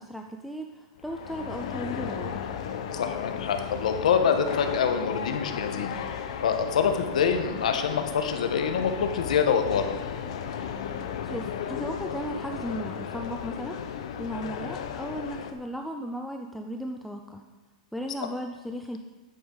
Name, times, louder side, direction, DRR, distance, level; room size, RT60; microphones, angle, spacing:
voice 1, 0.0-2.5 11.2-17.4 17.9-19.0, equal, ahead, 3 dB, 0.4 m, -36 dB
sound 1, 1.0-15.5, left 8 dB, 60° left, 0.9 m, -35 dB
voice 2, 2.9-5.9 6.4-9.9, left 7 dB, 80° left, 7 dB, 1.2 m, -25 dB
10.5 x 8.4 x 4.0 m, 1.2 s
supercardioid pair, 160°, 4 cm